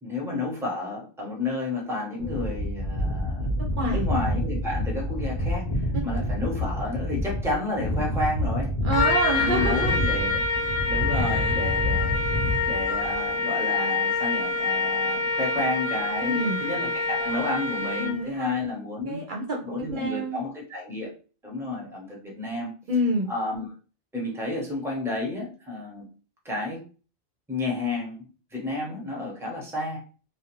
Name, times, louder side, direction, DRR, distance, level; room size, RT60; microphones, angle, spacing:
voice 1, 0.0-8.8 9.3-12.2 12.7-19.2 19.6-21.1 21.4-22.7 23.3-23.7 24.1-26.1 26.4-26.8 27.5-30.0, left 2 dB, 5° right, -2 dB, 0.8 m, -31 dB
sound 1, 2.2-13.3, equal, 45° left, 0.7 m, -28 dB
voice 2, 3.6-4.1 8.8-10.0 11.1-11.6 16.2-16.6 18.0-18.7 19.1-20.4 22.9-23.3, right 1 dB, 60° right, -1 dB, 0.7 m, -28 dB
Trumpet, 8.9-18.3, left 4 dB, 75° left, 0.8 m, -26 dB
2.4 x 2.1 x 3.0 m, 0.37 s
omnidirectional pair, 1.0 m